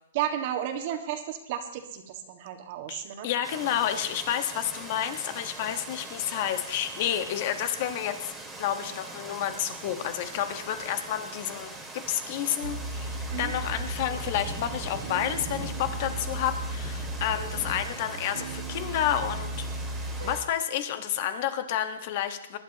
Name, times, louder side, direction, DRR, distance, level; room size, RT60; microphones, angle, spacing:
voice 1, 0.1-3.3 13.3-13.5, right 10 dB, 45° right, 5 dB, 1.8 m, -33 dB
voice 2, 2.9-8.3 8.6-11.7 12.1-19.9 20.2-22.6, left 10 dB, 45° left, 8 dB, 1.4 m, -30 dB
sound 1, 3.4-20.4, right 2 dB, 5° right, 2.2 m, -42 dB
sound 2, 12.6-20.4, right 2 dB, 80° right, 1.5 m, -35 dB
22.5 x 11.5 x 3.0 m, 0.84 s
hypercardioid pair, 145°, 0 cm